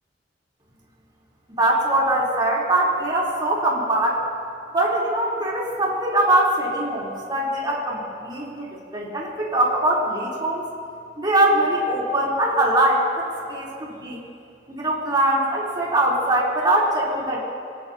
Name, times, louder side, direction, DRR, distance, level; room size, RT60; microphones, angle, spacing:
voice 1, 1.6-4.2 4.7-10.6 11.2-14.2 14.7-17.4, right 1 dB, 25° right, -5 dB, 3.9 m, -22 dB
25.0 x 18.0 x 3.0 m, 2.5 s
head